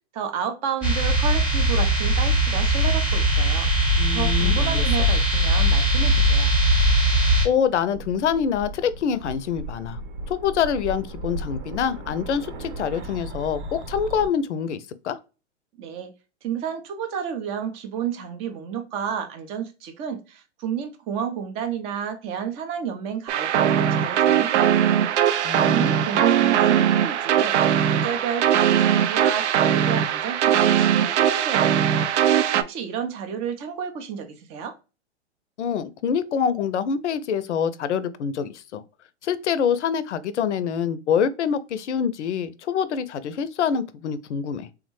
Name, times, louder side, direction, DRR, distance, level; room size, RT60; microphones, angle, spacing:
voice 1, 0.1-3.7 4.1-6.5 15.8-16.1 16.4-25.1 25.3-27.6 27.8-34.8, right 7 dB, 20° right, 0.4 m, -31 dB
sound 1, 0.8-7.5, equal, 5° right, 0.8 m, -20 dB
voice 2, 4.0-4.8 7.4-10.0 10.3-15.2 25.4-26.2 35.6-38.8 39.2-44.7, left 7 dB, 80° left, 0.5 m, -25 dB
sound 2, 6.5-14.3, right 2 dB, 45° right, 0.8 m, -37 dB
sound 3, 23.3-32.6, right 9 dB, 80° right, 0.5 m, -20 dB
3.5 x 2.1 x 3.0 m
hypercardioid pair, 125°, 34 cm